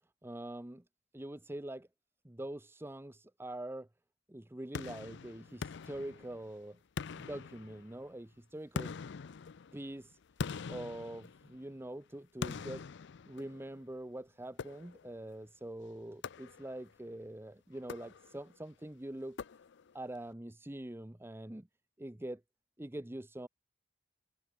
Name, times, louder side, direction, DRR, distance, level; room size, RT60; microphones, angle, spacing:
voice 1, 0.2-0.8 1.1-1.9 2.2-3.9 4.3-6.8 7.1-8.9 9.7-10.2 10.6-12.8 13.3-19.4 19.9-21.7 22.0-22.4 22.8-23.5, right 1 dB, 10° right, 0.8 m, -44 dB
sound 1, 4.7-6.6 7.0-8.1 8.8-11.8 12.4-13.8 14.6-15.2 16.2-16.9 17.8-18.6 19.4-20.0, left 5 dB, 65° left, 0.5 m, -43 dB
head